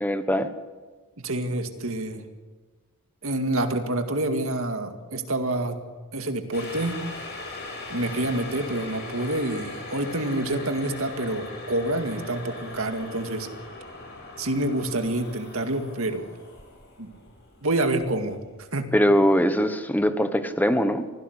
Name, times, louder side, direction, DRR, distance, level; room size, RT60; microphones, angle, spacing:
voice 1, 0.0-0.5 18.9-21.1, equal, 10° left, 10 dB, 1.1 m, -22 dB
voice 2, 1.2-2.2 3.2-5.8 6.1-7.0 7.9-13.5 14.4-16.3 17.0-17.1 17.6-18.4 18.7-18.9, right 1 dB, 65° right, 6 dB, 2.1 m, -27 dB
sound 1, 6.5-18.6 18.9-19.0, left 2 dB, 50° left, 6.7 m, -40 dB
24.0 x 16.5 x 8.1 m, 1.4 s
head